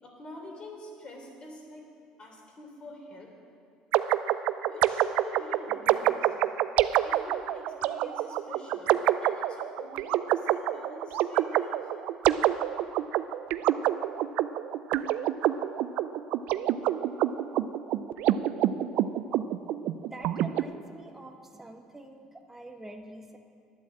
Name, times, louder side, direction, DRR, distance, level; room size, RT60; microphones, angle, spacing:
voice 1, 0.0-1.8 2.2-3.3 4.7-6.3 7.0-11.9, left 2 dB, 40° left, 1 dB, 3.3 m, -45 dB
sound 1, 3.9-20.6, right 13 dB, 70° right, 0.4 m, -27 dB
voice 2, 20.1-23.4, right 2 dB, 10° right, 3 dB, 1.2 m, -45 dB
11.0 x 9.2 x 7.4 m, 2.4 s
supercardioid pair, 85°, 3 cm